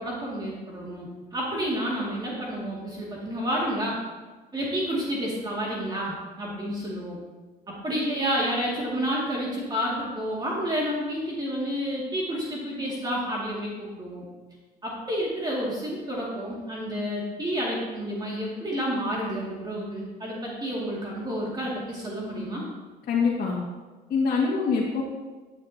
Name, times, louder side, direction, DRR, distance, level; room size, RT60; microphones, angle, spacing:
voice 1, 0.0-4.0 4.5-7.2 7.7-14.3 14.8-22.6, equal, 25° right, -5 dB, 2.4 m, -30 dB
voice 2, 23.1-23.6 24.1-25.0, left 5 dB, 55° left, -6 dB, 1.9 m, -24 dB
11.5 x 9.2 x 2.9 m, 1.3 s
cardioid pair, 110°, 17 cm